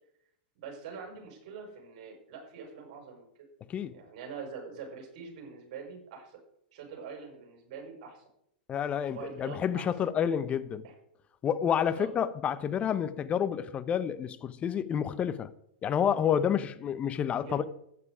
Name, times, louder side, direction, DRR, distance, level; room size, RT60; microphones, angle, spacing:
voice 1, 0.5-3.3 3.9-6.4 6.7-8.2 9.1-10.1 10.8-10.9 11.9-12.1 17.4-17.7, right 5 dB, 50° right, 5.7 m, -44 dB
voice 2, 8.7-10.8 11.4-15.5 15.8-17.7, left 8 dB, 25° left, 0.9 m, -29 dB
12.5 x 9.7 x 5.0 m
hypercardioid pair, 105°, 5 cm